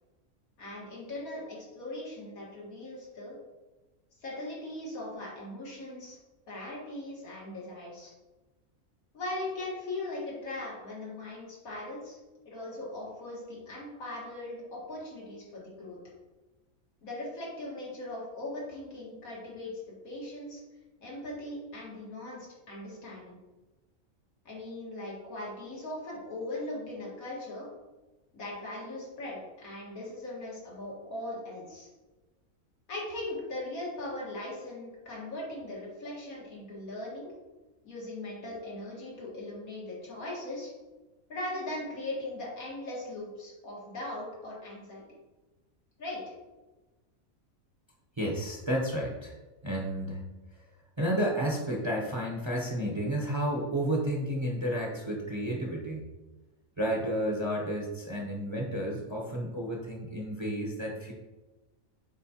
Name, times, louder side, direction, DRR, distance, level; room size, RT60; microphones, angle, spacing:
voice 1, 0.6-3.3 4.2-6.2 6.5-8.1 9.1-12.2 12.4-16.0 17.0-20.6 21.0-23.4 24.5-27.7 28.3-31.9 32.9-37.3 37.8-40.7 41.3-45.0 46.0-46.3 57.0-57.1, left 1 dB, 85° left, -4 dB, 2.2 m, -39 dB
voice 2, 48.2-49.3 49.6-50.2 51.0-56.1 56.8-61.1, equal, 25° right, -2 dB, 0.9 m, -31 dB
8.5 x 4.6 x 2.9 m, 1.1 s
omnidirectional pair, 1.4 m